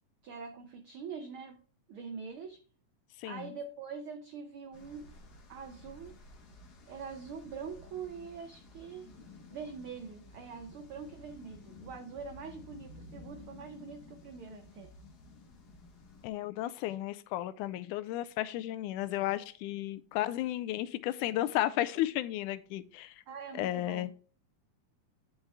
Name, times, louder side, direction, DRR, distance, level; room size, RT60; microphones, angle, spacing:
voice 1, 0.2-1.6 1.9-2.6 3.2-5.1 5.5-6.1 6.9-9.1 9.5-14.9 23.3-24.1, right 5 dB, 85° right, 5 dB, 1.2 m, -44 dB
voice 2, 3.2-3.5 16.2-23.2 23.5-24.1, left 14 dB, 90° left, 15 dB, 2.1 m, -33 dB
sound 1, 4.7-16.3, left 2 dB, 50° left, 1.1 m, -53 dB
9.7 x 5.7 x 3.4 m, 0.40 s
omnidirectional pair, 3.5 m